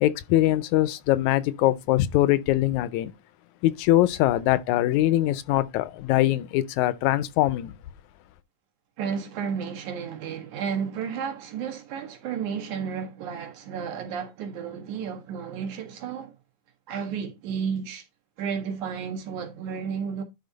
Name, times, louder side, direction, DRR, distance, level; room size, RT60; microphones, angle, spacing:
voice 1, 0.0-3.1 3.6-7.7, left 15 dB, 80° left, 1.9 m, -22 dB
voice 2, 9.0-16.3 16.9-18.0 18.4-20.2, right 7 dB, 75° right, 3.2 m, -32 dB
10.5 x 4.0 x 3.9 m
omnidirectional pair, 3.4 m